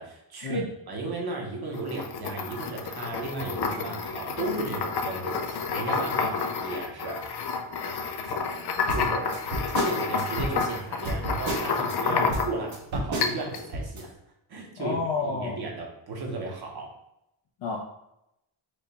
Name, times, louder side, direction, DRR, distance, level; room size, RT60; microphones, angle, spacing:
voice 1, 0.0-7.3 8.2-8.4 8.9-9.4 9.7-14.1 14.5-17.0, right 2 dB, 50° right, 0 dB, 1.0 m, -35 dB
sound 1, 1.7-12.7 13.2-13.6, left 5 dB, 55° left, 0.5 m, -30 dB
sound 2, 8.9-12.0 12.3-14.0, right 2 dB, 70° right, 1.1 m, -32 dB
voice 2, 14.8-15.6 17.6-17.8, left 4 dB, 85° left, -3 dB, 0.8 m, -29 dB
5.0 x 2.2 x 4.0 m, 0.83 s
wide cardioid pair, 175°, 48 cm